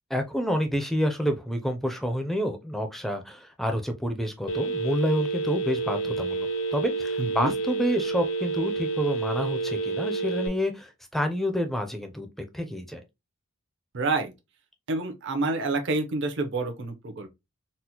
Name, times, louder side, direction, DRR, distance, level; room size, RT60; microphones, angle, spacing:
voice 1, 0.1-12.3 12.5-13.0, equal, ahead, 0.4 m, -28 dB
Telephone, 4.5-10.5, right 3 dB, 60° left, 0.5 m, -29 dB
voice 2, 7.2-7.5 13.9-14.3 14.9-17.3, right 3 dB, 55° right, 0.6 m, -28 dB
4.2 x 2.0 x 2.7 m
head